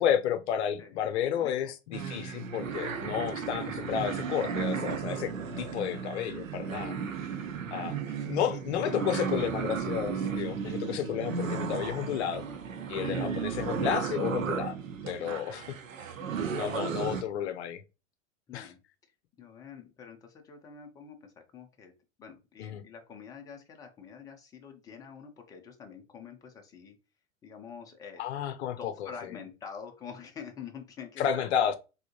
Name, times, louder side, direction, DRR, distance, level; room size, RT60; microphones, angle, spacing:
voice 1, 0.0-5.3 5.6-7.0 7.7-12.4 12.9-14.8 15.0-15.8 16.5-17.8 18.5-18.7 22.6-22.8 28.2-29.3 31.2-31.8, left 9 dB, 55° left, 0.6 m, -31 dB
voice 2, 1.4-1.7 2.9-3.1 5.4-5.6 7.3-7.6 10.6-11.0 11.3-11.4 13.0-13.2 15.2-15.3 16.1-16.7 18.5-18.8 19.4-27.0 27.4-28.3 28.8-31.5, left 6 dB, 10° left, 0.4 m, -47 dB
sound 1, 1.9-17.2, right 6 dB, 80° right, 0.6 m, -34 dB
3.4 x 2.7 x 2.7 m
figure-of-eight pair, 95°, 39 cm